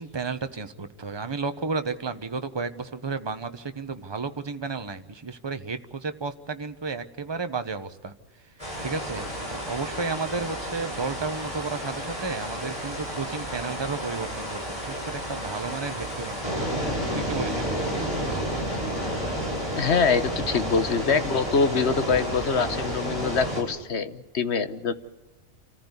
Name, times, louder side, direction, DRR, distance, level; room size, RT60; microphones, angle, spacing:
voice 1, 0.0-8.1 8.8-16.6 17.1-18.1, right 4 dB, 20° right, 9 dB, 1.0 m, -33 dB
sound 1, 8.6-23.6, equal, 25° left, 8.1 m, -31 dB
voice 2, 19.7-24.9, left 5 dB, 55° left, 11 dB, 1.2 m, -24 dB
27.5 x 14.5 x 8.2 m, 1.1 s
omnidirectional pair, 1.4 m